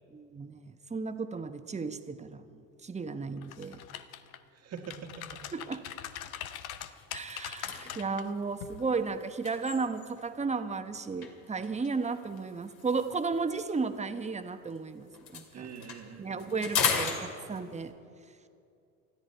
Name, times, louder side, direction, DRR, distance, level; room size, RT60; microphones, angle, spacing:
voice 1, 0.1-3.8 5.5-5.8 7.1-15.7 16.2-17.2 17.5-17.9, right 4 dB, 15° right, 9 dB, 1.0 m, -34 dB
sound 1, 3.4-4.4 4.8-8.2 8.6-8.8, left 10 dB, 90° left, 0.8 m, -42 dB
voice 2, 4.5-5.4 15.5-16.9, right 6 dB, 40° right, 3 dB, 1.6 m, -45 dB
sound 2, 5.5-5.6 5.9-6.1 6.4-10.4 11.2-14.8 15.1-17.9, left 6 dB, 65° left, 2.6 m, -37 dB
20.0 x 13.5 x 4.5 m, 2.5 s
hypercardioid pair, 75°, 41 cm